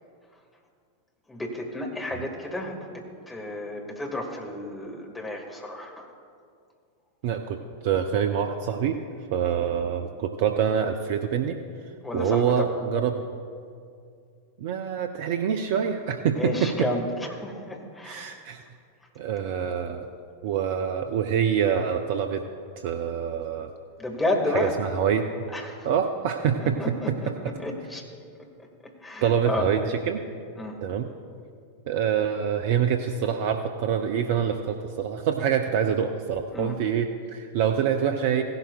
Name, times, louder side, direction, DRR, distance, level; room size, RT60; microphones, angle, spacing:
voice 1, 1.3-6.1 12.0-12.7 16.3-18.3 24.0-24.8 25.5-25.9 26.4-28.1 28.4-29.7 30.6-30.8 36.5-36.8, left 2 dB, 10° left, 1 dB, 1.7 m, -32 dB
voice 2, 7.2-9.0 9.3-11.6 12.1-13.2 14.6-16.9 18.0-18.6 19.2-20.1 20.4-22.4 22.8-23.7 24.5-25.3 25.8-26.8 29.2-30.2 30.8-31.1 31.9-38.4, right 8 dB, 50° right, 6 dB, 0.5 m, -26 dB
16.5 x 11.5 x 2.3 m, 2.3 s
figure-of-eight pair, 90°, 0 cm